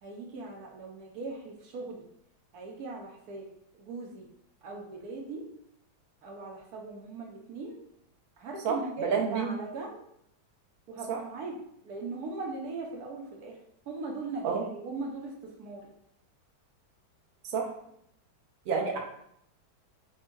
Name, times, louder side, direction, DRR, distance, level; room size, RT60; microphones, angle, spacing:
voice 1, 0.0-2.1 2.5-3.4 3.7-4.3 4.6-5.4 6.2-7.8 8.4-10.0 10.9-11.6 11.8-13.6 13.9-15.9 18.7-19.0, right 3 dB, 65° right, 0 dB, 1.0 m, -39 dB
voice 2, 9.0-9.6 11.1-11.2 14.4-14.6 17.4-17.7 18.7-19.0, right 6 dB, 85° right, 0 dB, 0.7 m, -28 dB
3.5 x 2.2 x 4.4 m, 0.73 s
omnidirectional pair, 2.2 m